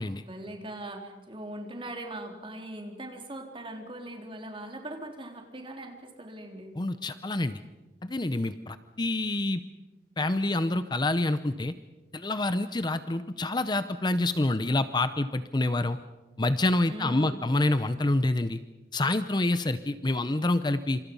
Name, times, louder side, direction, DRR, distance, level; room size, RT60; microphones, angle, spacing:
voice 1, 0.0-6.8 16.9-17.5, right 1 dB, 30° right, 3 dB, 3.8 m, -40 dB
voice 2, 6.8-7.6 8.0-9.6 10.2-11.7 12.1-16.0 16.4-18.6 18.9-21.0, left 2 dB, 25° left, 12 dB, 0.7 m, -27 dB
27.5 x 27.0 x 5.5 m, 1.2 s
head